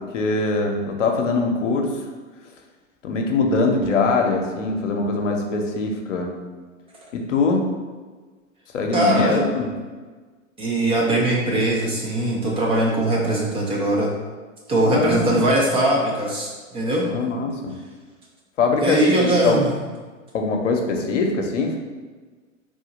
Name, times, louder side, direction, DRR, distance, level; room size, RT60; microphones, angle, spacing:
voice 1, 0.0-2.0 3.0-6.4 7.1-7.7 8.7-9.7 14.9-15.4 17.1-17.8 18.6-19.6 20.3-21.8, left 3 dB, 65° left, 2 dB, 0.8 m, -22 dB
voice 2, 8.9-9.4 10.6-14.1 14.7-17.1 18.8-19.7, right 1 dB, 15° right, -3 dB, 0.5 m, -21 dB
3.7 x 2.7 x 3.9 m, 1.4 s
figure-of-eight pair, 105°, 39 cm